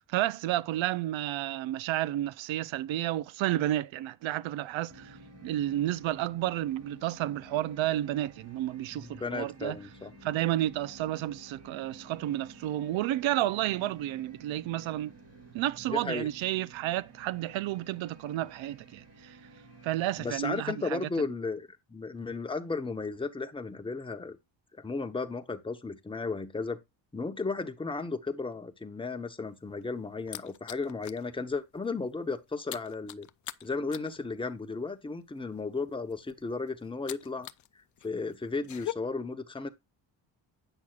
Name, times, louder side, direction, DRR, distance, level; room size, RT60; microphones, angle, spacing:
voice 1, 0.0-5.2 5.4-9.8 10.2-15.1 15.5-19.4 19.8-21.0, right 14 dB, 75° right, 0.7 m, -31 dB
sound 1, 4.9-20.3, right 2 dB, 30° right, 3.0 m, -53 dB
voice 2, 8.9-10.1 15.9-16.3 20.2-24.4 24.7-26.8 27.1-33.3 33.6-37.5 38.0-39.7, left 4 dB, 10° left, 0.9 m, -34 dB
sound 2, 29.5-31.3 31.6-31.9 32.1-37.7 38.0-38.9, left 12 dB, 40° left, 0.5 m, -43 dB
8.9 x 6.1 x 2.4 m
cardioid pair, 110°, 47 cm